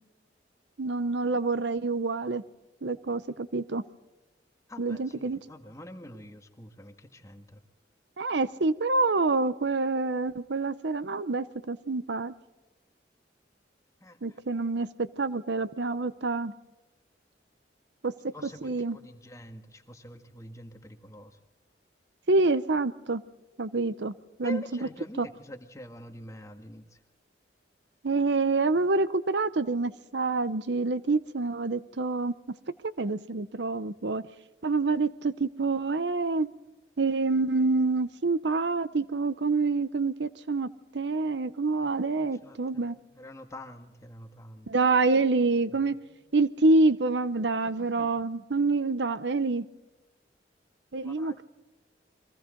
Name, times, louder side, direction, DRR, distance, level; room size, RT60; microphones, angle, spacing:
voice 1, 0.8-2.4 2.8-3.8 4.8-5.4 8.2-12.3 14.2-16.5 18.0-18.3 18.6-19.0 22.3-23.2 23.6-24.9 25.2-25.3 28.0-32.6 32.8-34.3 34.6-36.5 37.0-43.0 44.7-46.0 46.3-49.7 50.9-51.4, right 3 dB, 75° right, 0.8 m, -27 dB
voice 2, 4.7-7.6 14.0-14.4 18.3-21.4 24.4-27.0 42.0-44.7 45.9-46.2 47.6-48.1 51.0-51.4, equal, 15° left, 1.6 m, -46 dB
30.0 x 22.5 x 3.9 m
head